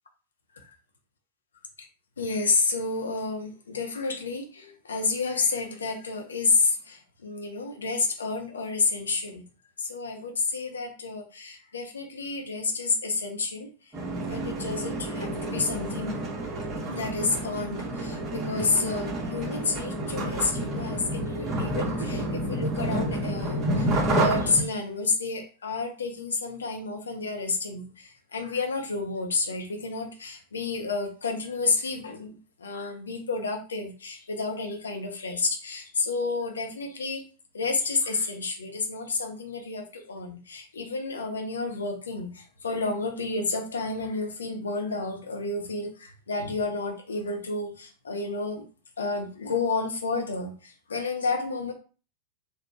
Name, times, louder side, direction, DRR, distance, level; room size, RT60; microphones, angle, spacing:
voice 1, 2.2-9.4 9.8-13.9 14.3-16.4 16.9-37.2 37.5-48.6 49.0-51.7, left 4 dB, 70° left, 3 dB, 0.7 m, -30 dB
sound 1, 13.9-24.6, right 1 dB, 20° right, 1.7 m, -29 dB
4.1 x 2.5 x 2.3 m, 0.37 s
figure-of-eight pair, 90°, 0 cm